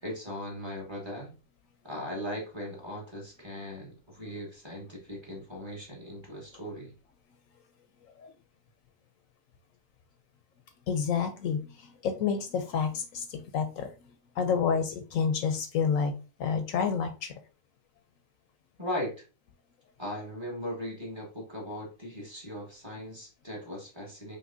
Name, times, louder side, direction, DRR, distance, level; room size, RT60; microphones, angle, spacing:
voice 1, 0.0-1.3 1.8-6.9 18.8-19.2 20.0-24.4, equal, 20° right, -2 dB, 1.2 m, -38 dB
voice 2, 10.9-16.1 16.4-17.4, left 6 dB, 70° left, 8 dB, 0.9 m, -29 dB
5.4 x 3.0 x 2.5 m, 0.32 s
omnidirectional pair, 1.5 m